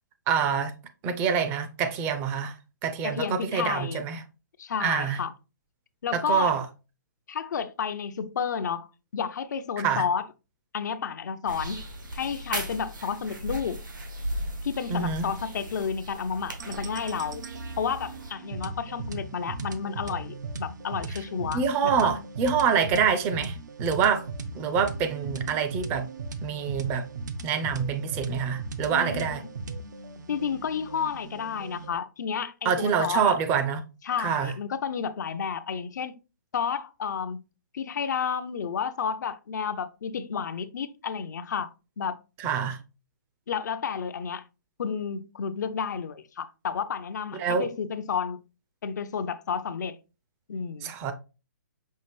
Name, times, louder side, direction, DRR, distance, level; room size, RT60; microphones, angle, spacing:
voice 1, 0.3-0.7 1.0-2.5 2.8-4.2 4.8-5.2 6.1-6.6 9.8-10.0 14.9-15.3 21.5-24.2 24.6-26.1 26.4-27.0 27.4-29.4 32.6-33.8 34.2-34.5 42.4-42.8 47.3-47.7 50.8-51.1, right 7 dB, 20° right, 0.4 m, -26 dB
voice 2, 3.0-4.0 4.6-5.3 6.0-6.5 7.3-10.3 10.7-11.8 12.1-13.8 14.6-17.4 17.8-22.1 28.9-29.4 30.3-33.4 34.0-36.2 36.5-37.4 37.7-41.7 42.0-42.2 43.5-44.4 44.8-48.4 48.8-50.0 50.5-50.9, left 7 dB, 65° left, 0.5 m, -31 dB
sound 1, 11.5-18.3, right 1 dB, 85° right, 1.3 m, -37 dB
sound 2, 16.6-32.0, right 3 dB, 65° right, 0.6 m, -38 dB
5.5 x 2.5 x 3.2 m
hypercardioid pair, 145°, 10 cm